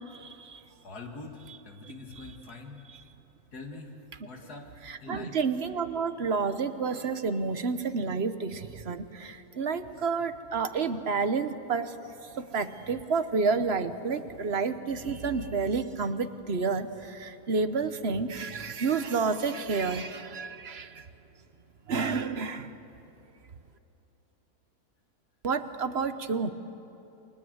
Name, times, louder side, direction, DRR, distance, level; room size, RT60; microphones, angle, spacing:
voice 1, 0.8-2.9 3.5-4.0 4.3-4.7 5.0-5.4, left 3 dB, 75° left, 2 dB, 2.5 m, -44 dB
voice 2, 4.8-11.9 12.4-20.9 21.9-22.7 25.4-26.5, right 4 dB, 45° right, 10 dB, 1.2 m, -30 dB
29.5 x 24.0 x 8.0 m, 3.0 s
omnidirectional pair, 1.7 m